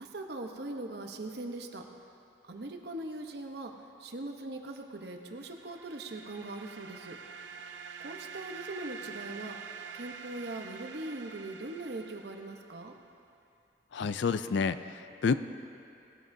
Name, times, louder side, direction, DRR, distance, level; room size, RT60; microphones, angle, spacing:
voice 1, 0.0-1.8 2.4-3.7 4.0-7.2 8.0-9.6 9.9-13.0, right 2 dB, 60° right, 4 dB, 0.9 m, -41 dB
sound 1, 5.3-13.0, right 6 dB, 75° right, 0.5 m, -46 dB
voice 2, 13.9-15.3, left 5 dB, 70° left, 12 dB, 0.4 m, -29 dB
18.0 x 12.0 x 2.7 m, 2.7 s
head